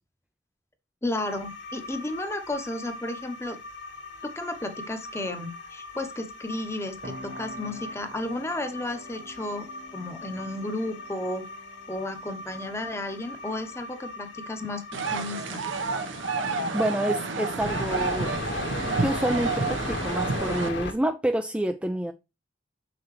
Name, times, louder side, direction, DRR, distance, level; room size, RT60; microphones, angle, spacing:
voice 1, 1.0-3.6 4.2-9.7 9.9-11.4 11.9-15.6, left 2 dB, 15° left, 1.0 m, -33 dB
sound 1, 1.2-20.9, left 2 dB, 60° left, 1.9 m, -38 dB
sound 2, 7.0-16.8, equal, 50° right, 0.9 m, -49 dB
sound 3, 14.9-20.7, right 4 dB, 75° right, 1.1 m, -30 dB
voice 2, 16.7-18.3 19.0-22.1, right 1 dB, 5° right, 0.4 m, -28 dB
7.5 x 5.9 x 3.2 m
head